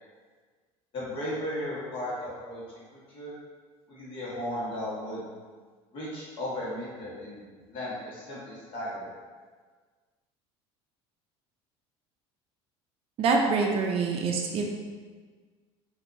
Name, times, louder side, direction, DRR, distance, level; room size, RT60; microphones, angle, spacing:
voice 1, 0.9-2.6 2.9-3.3 3.9-5.2 5.9-7.4 7.7-9.1, left 1 dB, 45° left, -7 dB, 1.5 m, -35 dB
voice 2, 13.2-14.6, right 4 dB, 50° right, 1 dB, 0.5 m, -25 dB
4.3 x 2.7 x 2.6 m, 1.5 s
supercardioid pair, 115°, 13 cm